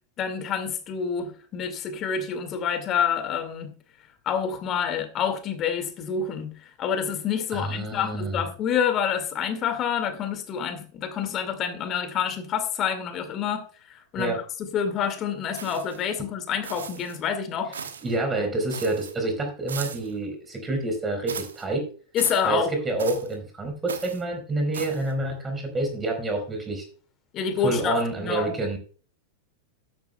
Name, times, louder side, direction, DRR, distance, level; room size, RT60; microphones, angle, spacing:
voice 1, 0.2-3.7 4.3-6.5 6.8-13.6 13.9-14.3 14.7-17.7 22.1-22.7 27.3-28.5, left 7 dB, 30° left, 8 dB, 2.2 m, -27 dB
voice 2, 7.5-8.4 14.1-14.4 16.2-16.3 18.0-21.9 22.4-26.8 27.6-28.8, right 2 dB, 15° right, 3 dB, 4.4 m, -28 dB
sound 1, 15.5-16.1 16.6-17.2 17.7-18.1 18.7-19.1 19.7-20.1 21.3-21.6 22.2-22.5 23.0-23.4 23.9-24.2 24.7-25.1, right 6 dB, 70° right, 1.3 m, -37 dB
13.0 x 10.5 x 2.3 m, 0.41 s
figure-of-eight pair, 90°, 0 cm